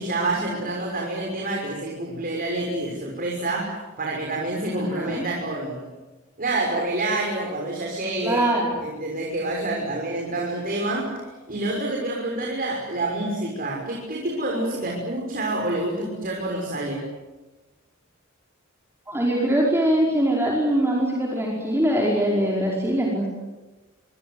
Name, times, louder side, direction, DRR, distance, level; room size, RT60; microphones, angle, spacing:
voice 1, 0.0-5.8 6.4-8.5 8.8-11.2 11.5-17.0, right 2 dB, 45° right, -1 dB, 6.3 m, -27 dB
voice 2, 4.7-5.2 8.2-8.7 19.1-23.3, right 1 dB, 10° right, -3 dB, 5.1 m, -22 dB
27.0 x 26.0 x 8.1 m, 1.2 s
head